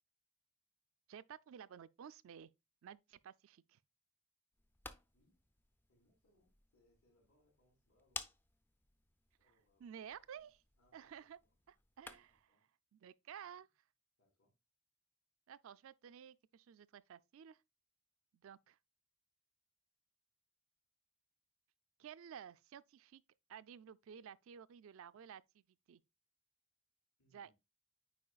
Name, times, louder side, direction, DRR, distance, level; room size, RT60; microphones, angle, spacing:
voice 1, 1.1-2.5 2.8-3.8 9.8-10.6 10.9-11.4 11.7-12.4 12.9-13.7 15.5-17.6 18.3-18.8 22.0-23.2 23.5-26.0 27.3-27.5, right 8 dB, 65° right, 0.3 m, -54 dB
sound 1, 4.5-12.5, left 3 dB, 10° left, 0.3 m, -55 dB
voice 2, 5.9-8.3 9.4-9.9 10.2-10.5 10.8-11.6 12.1-12.7 13.4-13.6 14.2-14.5 27.2-27.5, left 1 dB, 80° left, 3.5 m, -77 dB
8.4 x 4.9 x 2.3 m
head